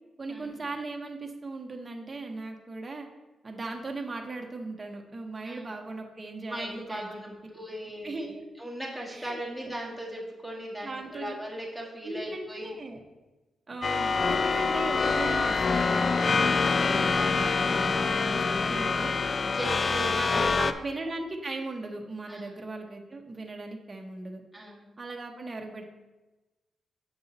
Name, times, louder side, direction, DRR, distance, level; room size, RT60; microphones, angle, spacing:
voice 1, 0.2-3.1 3.4-7.4 7.8-8.4 9.1-9.7 10.8-11.3 12.0-13.0 13.7-19.1 19.9-24.4 25.0-25.8, right 2 dB, 25° right, 2 dB, 0.9 m, -38 dB
voice 2, 6.5-8.3 8.6-12.8 19.4-20.6 22.3-22.4 24.5-24.9, equal, 5° left, -3 dB, 1.9 m, -38 dB
sound 1, 13.8-20.7, left 4 dB, 40° left, 0.3 m, -25 dB
7.1 x 5.5 x 4.0 m, 1.1 s
cardioid pair, 105°, 0 cm